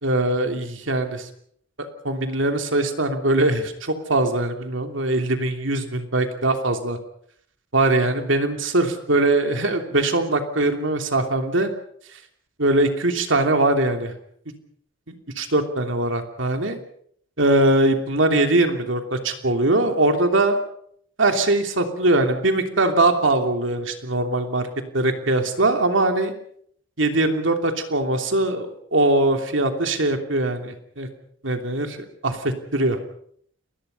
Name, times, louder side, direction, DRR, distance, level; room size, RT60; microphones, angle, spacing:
voice 1, 0.0-1.3 1.8-7.0 7.7-11.7 12.1-12.2 12.6-14.1 15.1-16.8 17.4-20.6 21.2-24.7 24.9-26.3 27.0-31.1 31.4-32.0 32.2-33.0, right 2 dB, 70° right, 5 dB, 3.1 m, -21 dB
29.5 x 21.0 x 5.6 m, 0.66 s
head